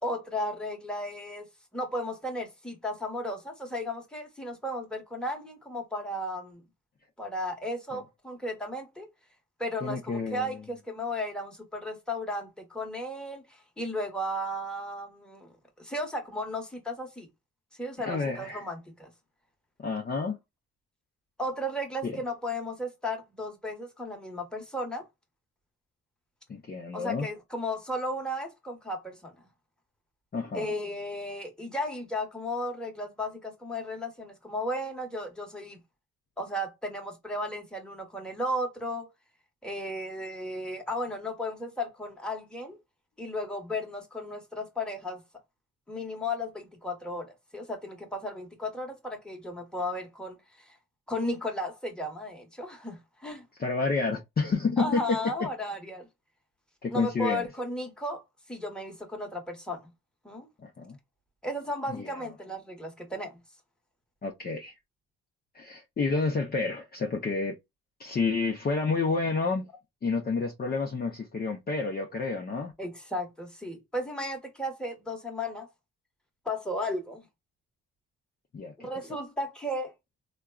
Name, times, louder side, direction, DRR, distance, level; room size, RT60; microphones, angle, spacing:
voice 1, 0.0-1.5 1.7-6.6 7.2-9.1 9.6-17.3 17.7-19.1 21.4-25.0 26.9-29.5 30.5-35.8 36.4-39.1 39.6-42.8 43.2-45.2 45.9-50.8 51.1-53.4 54.8-56.1 56.9-58.2 58.5-59.9 60.2-60.5 61.4-63.4 72.8-75.7 76.4-77.3 78.8-79.9, left 1 dB, 5° left, 1.1 m, -35 dB
voice 2, 9.8-10.6 18.0-18.7 19.8-20.4 22.0-22.2 26.5-27.3 30.3-30.7 53.6-55.2 56.8-57.5 60.6-61.0 61.9-62.2 64.2-64.7 65.5-67.6 68.0-69.7 70.0-72.7 78.5-78.9, left 4 dB, 30° left, 0.6 m, -29 dB
3.6 x 2.2 x 2.2 m
cardioid pair, 90°, 30 cm